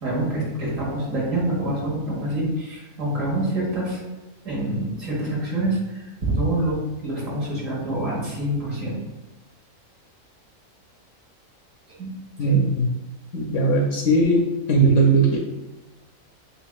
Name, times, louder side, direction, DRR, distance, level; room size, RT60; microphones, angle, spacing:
voice 1, 0.0-4.0 4.4-9.0 12.0-12.1 12.4-12.6, right 1 dB, 70° right, -5 dB, 1.8 m, -26 dB
voice 2, 12.4-12.9 13.3-14.4 14.7-15.4, right 2 dB, 70° left, 0 dB, 0.9 m, -18 dB
7.0 x 2.4 x 2.3 m, 1.1 s
omnidirectional pair, 1.4 m